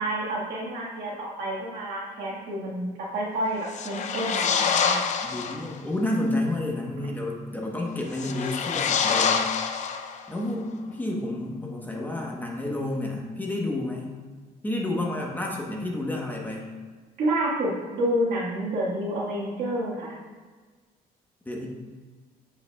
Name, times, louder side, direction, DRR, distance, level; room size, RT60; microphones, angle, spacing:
voice 1, 0.0-5.1 17.2-20.2, right 1 dB, 75° right, -4 dB, 1.6 m, -29 dB
sound 1, 3.6-5.7 8.1-10.4, left 6 dB, 45° left, 0.5 m, -26 dB
voice 2, 5.2-9.5 10.3-14.1 14.6-16.7 21.4-21.7, left 1 dB, 10° left, -1 dB, 1.0 m, -30 dB
7.8 x 5.3 x 2.3 m, 1.4 s
cardioid pair, 110°, 17 cm